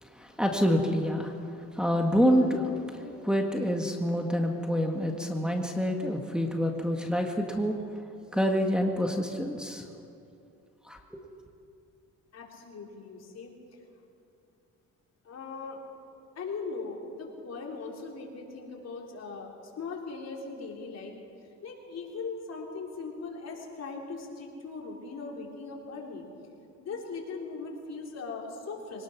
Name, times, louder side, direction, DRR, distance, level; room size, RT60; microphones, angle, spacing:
voice 1, 0.0-8.0 8.3-9.9 10.8-11.2, equal, 5° right, 1 dB, 1.8 m, -27 dB
voice 2, 12.3-13.5 15.2-15.8 16.4-21.1 21.6-26.2 26.8-29.0, left 4 dB, 55° left, -1 dB, 4.3 m, -39 dB
24.0 x 19.0 x 6.1 m, 2.6 s
cardioid pair, 90°, 30 cm